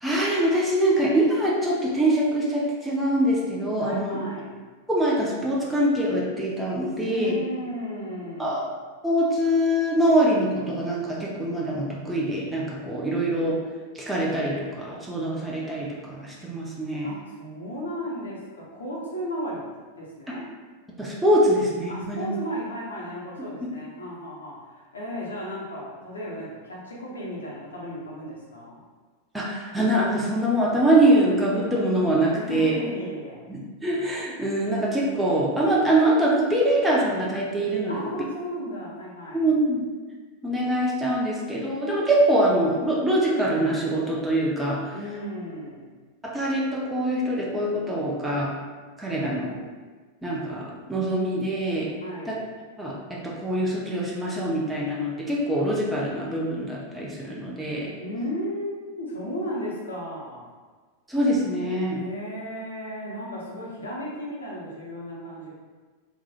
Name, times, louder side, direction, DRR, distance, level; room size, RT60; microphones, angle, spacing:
voice 1, 0.0-4.2 4.9-7.3 8.4-8.7 9.0-13.6 13.9-17.1 21.0-22.3 29.3-32.7 33.5-38.0 39.3-39.9 40.4-44.8 46.2-48.5 49.0-49.6 50.2-51.9 52.2-52.4 52.8-57.9 61.1-62.0, right 1 dB, 5° right, -5 dB, 0.6 m, -24 dB
voice 2, 3.8-4.6 6.9-8.6 17.0-19.6 19.9-20.4 21.9-28.8 32.3-33.4 37.9-39.5 44.9-45.9 52.0-52.4 58.0-60.5 61.9-65.5, equal, 75° left, -5 dB, 0.9 m, -35 dB
3.6 x 3.1 x 2.4 m, 1.4 s
figure-of-eight pair, 90°, 0 cm